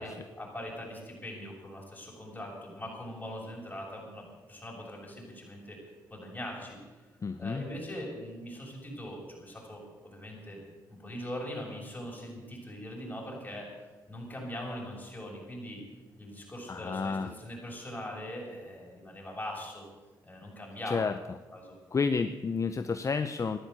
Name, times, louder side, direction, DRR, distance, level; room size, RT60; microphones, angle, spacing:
voice 1, 0.0-5.8 6.1-6.8 7.4-10.6 10.9-15.8 16.2-19.8 20.2-21.0 21.5-21.8, equal, 20° left, -2 dB, 7.1 m, -41 dB
voice 2, 7.2-7.7 16.7-17.3 20.9-21.1 21.9-23.6, left 5 dB, 40° left, 10 dB, 0.7 m, -30 dB
13.5 x 11.0 x 8.1 m, 1.2 s
cardioid pair, 70°, 8 cm